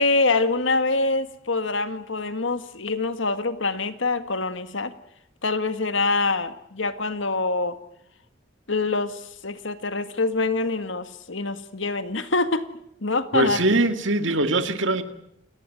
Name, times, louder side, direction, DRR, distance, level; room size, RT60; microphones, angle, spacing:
voice 1, 0.0-4.9 5.4-7.8 8.7-12.7 13.0-13.6, left 3 dB, 65° left, 11 dB, 1.8 m, -25 dB
voice 2, 13.3-15.0, right 2 dB, 65° right, 9 dB, 2.2 m, -22 dB
29.0 x 18.5 x 9.2 m, 0.78 s
head